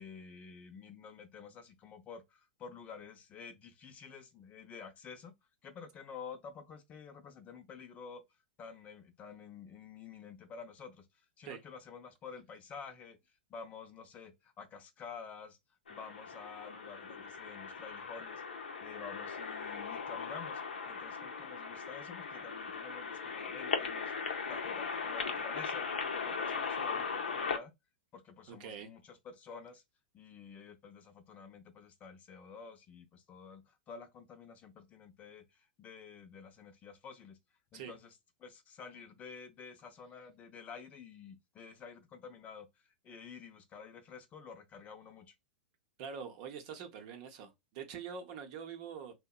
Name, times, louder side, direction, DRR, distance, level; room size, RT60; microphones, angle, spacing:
voice 1, 0.0-5.3 5.6-8.2 8.6-13.2 13.5-15.6 15.9-18.4 18.8-24.1 24.5-27.7 28.1-29.8 30.1-37.4 37.7-45.3, left 6 dB, 30° left, 0.5 m, -50 dB
sound 1, 15.9-27.6, left 5 dB, 85° left, 0.5 m, -38 dB
voice 2, 28.5-28.9 37.7-37.9 46.0-49.1, right 7 dB, 50° right, 0.7 m, -44 dB
2.7 x 2.1 x 2.3 m
hypercardioid pair, 110°, 5 cm